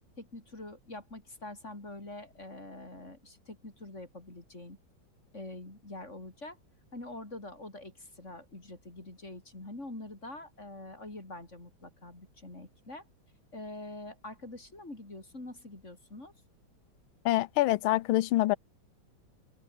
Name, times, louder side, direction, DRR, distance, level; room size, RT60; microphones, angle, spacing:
voice 1, 0.2-4.8 5.3-6.6 6.9-13.0 13.5-16.3, left 2 dB, 35° left, 5.0 m, -45 dB
voice 2, 17.2-18.6, left 16 dB, 90° left, 1.5 m, -25 dB
omnidirectional pair, 2.2 m